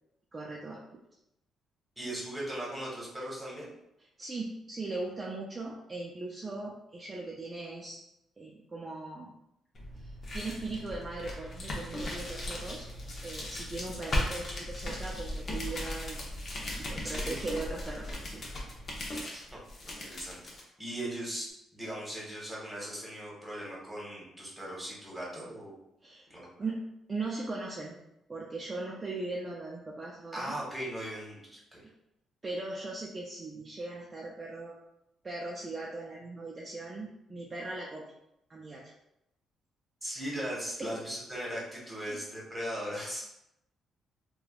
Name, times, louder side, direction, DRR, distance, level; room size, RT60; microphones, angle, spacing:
voice 1, 0.3-0.8 4.2-8.0 8.4-9.3 10.0-12.9 13.2-16.2 16.8-18.4 26.0-26.3 26.6-26.8 27.1-28.0 28.3-30.6 32.4-34.8 35.2-38.0 38.5-38.8 40.8-41.0 42.0-42.2, right 2 dB, 30° right, -3 dB, 0.4 m, -39 dB
voice 2, 2.0-3.7 16.9-17.5 19.3-25.7 26.3-26.6 30.3-31.8 40.0-43.3, equal, 10° right, -5 dB, 1.2 m, -39 dB
sound 1, 9.7-20.6, left 1 dB, 45° left, 0.7 m, -37 dB
3.2 x 2.3 x 2.4 m, 0.85 s
cardioid pair, 90°, 0 cm